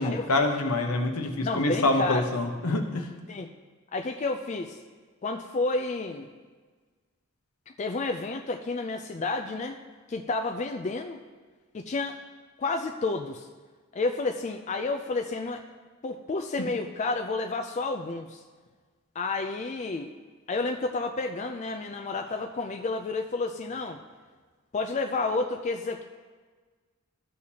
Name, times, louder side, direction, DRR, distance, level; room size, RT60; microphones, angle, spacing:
voice 1, 0.0-3.1 16.6-16.7, left 2 dB, 80° left, 4 dB, 1.0 m, -26 dB
voice 2, 1.4-2.2 3.3-3.5 3.9-4.8 5.2-6.3 7.8-9.8 10.1-11.2 11.7-12.2 12.6-13.5 13.9-15.6 16.0-18.4 19.2-20.1 20.5-24.0 24.7-26.0, left 3 dB, 30° left, 5 dB, 0.3 m, -30 dB
13.5 x 6.5 x 2.8 m, 1.4 s
head